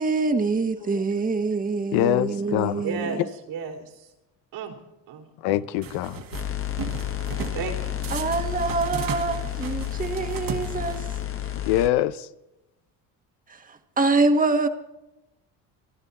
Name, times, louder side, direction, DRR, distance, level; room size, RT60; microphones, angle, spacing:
voice 1, 0.0-3.2 8.1-11.0 13.7-14.7, right 3 dB, 20° right, 1.6 m, -25 dB
voice 2, 1.9-2.8 5.4-6.2 11.6-12.3, left 13 dB, 75° left, 0.9 m, -24 dB
voice 3, 2.8-4.1 4.5-4.8 5.1-5.6 7.5-8.4, right 5 dB, 75° right, 4.1 m, -34 dB
sound 1, 5.8-6.4 6.8-7.6 8.0-11.2, right 7 dB, 55° right, 2.2 m, -36 dB
sound 2, 6.3-11.9, left 11 dB, 35° left, 1.3 m, -31 dB
27.5 x 11.5 x 4.3 m
supercardioid pair, 90°, 39 cm